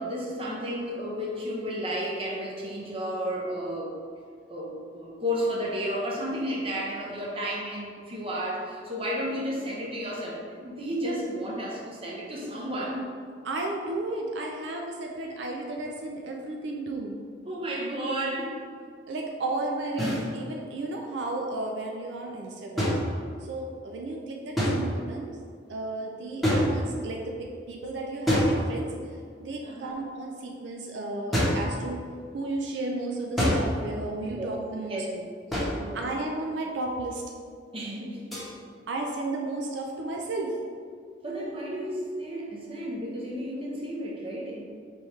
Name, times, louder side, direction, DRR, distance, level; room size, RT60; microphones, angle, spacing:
voice 1, 0.0-3.9 4.5-13.1 17.4-18.6 29.6-30.0 34.3-34.5 34.9-35.1 35.8-36.0 37.7-38.4 41.2-44.6, equal, 30° right, -4 dB, 0.8 m, -32 dB
voice 2, 13.4-17.2 19.1-23.0 23.5-25.4 25.7-28.9 29.4-32.0 32.3-35.2 35.5-37.2 38.9-40.6, right 2 dB, 80° right, 1 dB, 0.5 m, -33 dB
sound 1, 20.0-20.3 22.8-23.6 24.6-25.2 26.4-27.2 28.3-29.1 31.3-31.7 33.4-33.9 35.5-35.9 38.3-38.5, equal, ahead, 1.0 m, -26 dB
4.6 x 3.5 x 3.1 m, 2.1 s
head